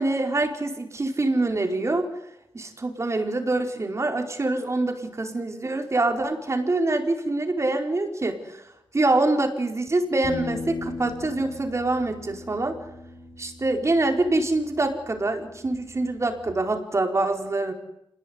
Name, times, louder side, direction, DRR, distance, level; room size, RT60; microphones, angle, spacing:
voice 1, 0.0-2.1 2.5-8.6 8.9-12.8 13.4-17.7, right 2 dB, 35° right, 4 dB, 4.9 m, -25 dB
sound 1, 10.2-16.5, left 3 dB, 50° left, 4.2 m, -39 dB
27.5 x 20.0 x 9.8 m, 0.84 s
cardioid pair, 75°, 8 cm